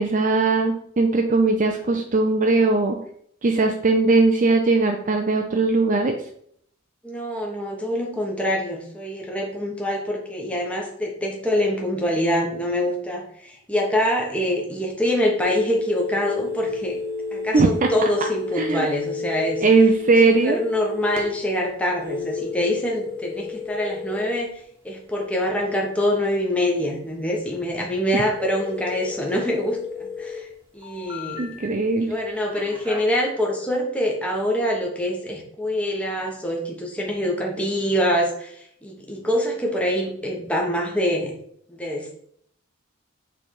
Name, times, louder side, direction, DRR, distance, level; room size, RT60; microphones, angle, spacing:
voice 1, 0.0-3.0 3.4-6.1 17.5-17.9 18.5-18.9 19.6-20.6 31.4-32.1, right 3 dB, 35° right, 3 dB, 0.5 m, -19 dB
voice 2, 7.0-17.0 17.3-19.6 20.2-24.5 24.8-30.5 30.7-31.5 32.1-38.6 38.8-41.3 41.7-42.1, left 1 dB, 5° left, -1 dB, 1.0 m, -25 dB
sound 1, 15.4-21.2 22.0-24.4 28.4-30.4 30.8-31.6 32.5-33.0, left 3 dB, 15° right, 1.3 m, -32 dB
7.1 x 3.4 x 4.4 m, 0.66 s
head